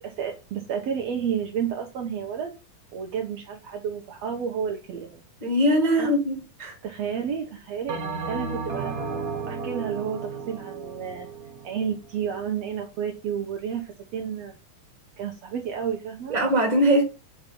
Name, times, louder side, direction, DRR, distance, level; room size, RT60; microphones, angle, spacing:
voice 1, 0.0-2.5 2.9-5.2 6.0-6.1 6.8-9.0 9.5-11.3 11.6-14.5 15.2-16.4, right 7 dB, 65° right, 2.0 m, -31 dB
voice 2, 5.4-6.8 16.3-17.0, equal, 15° right, 2.0 m, -21 dB
Bell, 7.9-12.5, right 4 dB, 80° right, 0.8 m, -33 dB
7.3 x 4.8 x 5.4 m
omnidirectional pair, 3.6 m